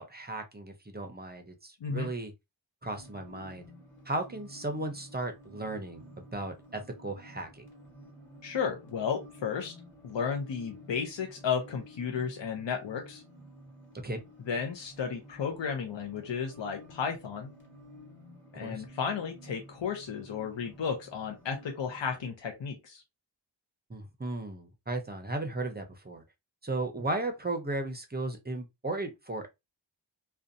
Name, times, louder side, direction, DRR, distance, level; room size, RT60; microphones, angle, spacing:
voice 1, 0.0-2.3 2.8-3.6 4.1-7.6 14.0-14.2 18.5-18.8 23.9-26.2 26.6-29.5, right 2 dB, 20° right, 0.5 m, -35 dB
sound 1, 2.9-22.3, equal, 25° left, 1.3 m, -52 dB
voice 2, 8.4-9.7 10.0-13.2 14.5-17.5 18.5-23.0, left 6 dB, 75° left, 0.6 m, -33 dB
2.5 x 2.2 x 2.5 m
wide cardioid pair, 60°, 44 cm